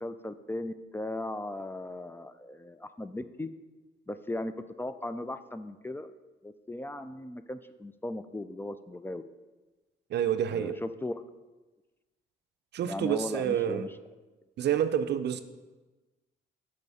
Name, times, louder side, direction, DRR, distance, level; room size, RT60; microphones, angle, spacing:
voice 1, 0.0-3.5 4.1-4.5 4.8-6.1 6.4-9.2 10.5-11.2 12.8-13.9, left 1 dB, 10° left, 12 dB, 0.3 m, -37 dB
voice 2, 10.1-10.8 12.7-13.9 14.6-15.4, right 9 dB, 60° right, 10 dB, 0.5 m, -28 dB
6.8 x 5.4 x 4.9 m, 1.2 s
cardioid pair, 90°, 20 cm